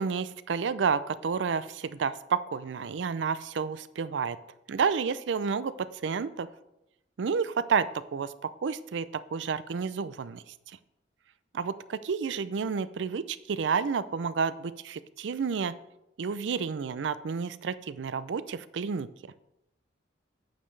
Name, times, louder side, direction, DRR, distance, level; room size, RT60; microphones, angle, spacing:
voice 1, 0.0-4.4 4.7-6.5 7.2-10.4 11.5-15.7 16.2-19.1, right 5 dB, 75° right, 15 dB, 0.4 m, -30 dB
8.8 x 7.4 x 3.2 m, 0.87 s
head